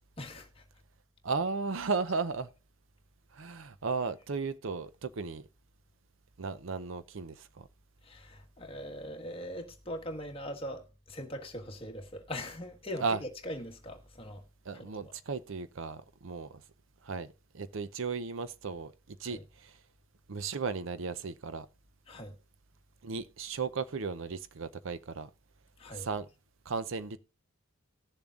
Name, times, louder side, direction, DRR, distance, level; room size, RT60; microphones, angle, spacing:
voice 1, 0.2-0.6 8.0-14.5 14.7-15.1 19.2-19.4 22.1-22.4 25.8-26.1, equal, 25° left, 1.4 m, -41 dB
voice 2, 1.2-2.5 3.3-5.5 6.4-7.7 13.0-13.2 14.7-16.6 17.0-19.8 20.3-21.7 23.0-25.3 25.9-26.3 26.7-27.2, right 4 dB, 70° right, 0.6 m, -35 dB
19.5 x 7.0 x 2.4 m
head